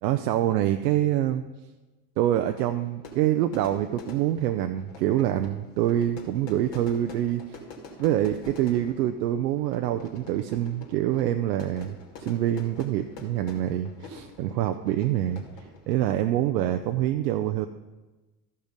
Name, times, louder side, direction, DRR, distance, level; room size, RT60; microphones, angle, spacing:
voice 1, 0.0-1.4 2.2-7.6 8.0-11.9 12.2-15.4 15.9-17.7, right 12 dB, 80° right, 8 dB, 0.6 m, -25 dB
Fire / Fireworks, 2.2-16.2, left 2 dB, 60° left, 2.2 m, -46 dB
13.0 x 5.5 x 5.1 m, 1.2 s
hypercardioid pair, 70°, 50 cm